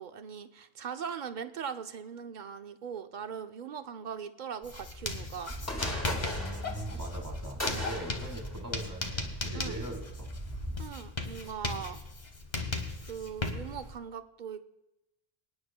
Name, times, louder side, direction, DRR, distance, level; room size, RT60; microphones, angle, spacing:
voice 1, 0.0-5.5 9.5-9.7 10.8-12.0 13.0-14.6, right 7 dB, 55° right, 8 dB, 0.7 m, -40 dB
Writing, 4.6-13.9, left 2 dB, 45° left, 1.3 m, -37 dB
sound 1, 5.5-10.8, equal, 15° left, 2.1 m, -38 dB
voice 2, 6.4-10.3, right 1 dB, 20° right, 1 dB, 1.8 m, -41 dB
25.5 x 9.7 x 2.2 m, 0.92 s
omnidirectional pair, 1.0 m